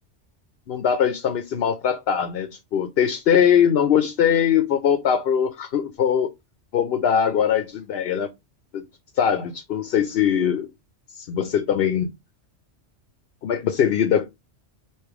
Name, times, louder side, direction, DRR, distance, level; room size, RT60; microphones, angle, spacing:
voice 1, 0.7-6.3 6.7-8.3 8.7-8.8 9.2-10.7 11.1-12.1 13.4-14.3, left 8 dB, 65° left, 0.8 m, -21 dB
3.2 x 3.0 x 4.6 m
omnidirectional pair, 1.2 m